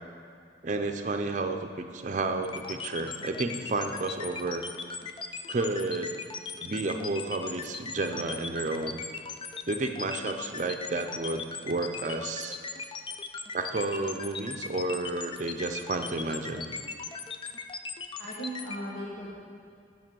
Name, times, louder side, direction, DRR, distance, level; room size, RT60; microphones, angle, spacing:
voice 1, 0.6-4.6 5.5-6.2 6.6-9.0 9.7-12.6 13.5-16.7, right 2 dB, 45° right, 5 dB, 0.6 m, -31 dB
sound 1, 2.4-18.8, left 5 dB, 30° left, 0.4 m, -38 dB
voice 2, 18.2-19.3, right 1 dB, 85° left, -7 dB, 1.3 m, -37 dB
9.2 x 5.4 x 7.5 m, 2.3 s
head